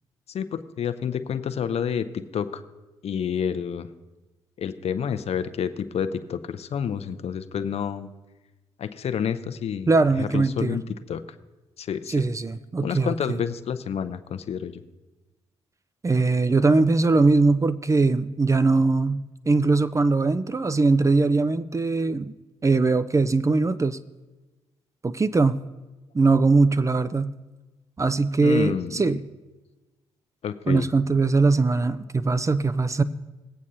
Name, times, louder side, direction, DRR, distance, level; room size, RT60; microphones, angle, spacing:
voice 1, 0.3-2.6 3.0-3.9 4.6-8.1 8.8-9.9 10.2-10.8 11.1-11.2 11.8-12.3 12.8-14.8 28.4-28.9 30.4-30.9, left 8 dB, 50° left, 11 dB, 0.7 m, -29 dB
voice 2, 9.9-10.8 12.1-13.4 16.0-22.3 22.6-24.0 25.0-25.6 26.1-27.3 28.0-29.3 30.7-33.0, right 3 dB, 25° right, 12 dB, 0.5 m, -21 dB
19.5 x 8.4 x 2.7 m, 1.1 s
hypercardioid pair, 40°, 13 cm